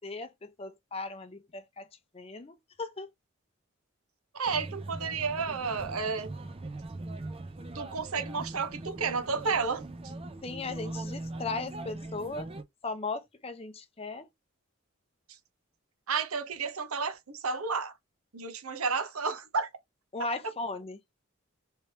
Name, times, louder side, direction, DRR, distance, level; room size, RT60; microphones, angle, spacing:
voice 1, 0.0-1.9 2.1-3.1 10.4-12.5 12.8-14.3 20.1-21.0, left 3 dB, 25° left, 0.6 m, -37 dB
voice 2, 4.3-6.3 7.7-9.8 16.1-17.9 18.3-19.7, right 5 dB, 90° right, 1.0 m, -31 dB
sound 1, 4.5-12.6, right 2 dB, 25° right, 0.5 m, -41 dB
3.3 x 3.2 x 2.9 m
head